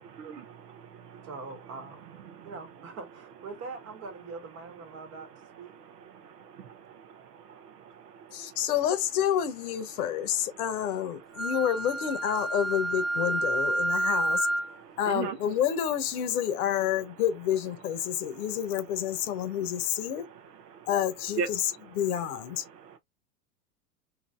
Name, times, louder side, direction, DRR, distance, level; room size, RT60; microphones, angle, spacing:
voice 1, 0.0-2.9 4.6-8.7 11.2-11.5 13.8-14.1 14.7-15.4 18.1-18.5 19.1-20.9 21.4-21.5 22.6-23.0, right 6 dB, 75° right, 0.9 m, -42 dB
voice 2, 1.3-2.1 2.4-5.3 5.6-5.7, right 4 dB, 30° right, 1.3 m, -42 dB
voice 3, 8.3-14.5 15.0-20.3 20.9-22.6, left 10 dB, 60° left, 0.9 m, -29 dB
Wind instrument woodwind instrument, 11.4-14.7, right 1 dB, ahead, 0.5 m, -29 dB
2.9 x 2.6 x 2.4 m
hypercardioid pair, 100°, 49 cm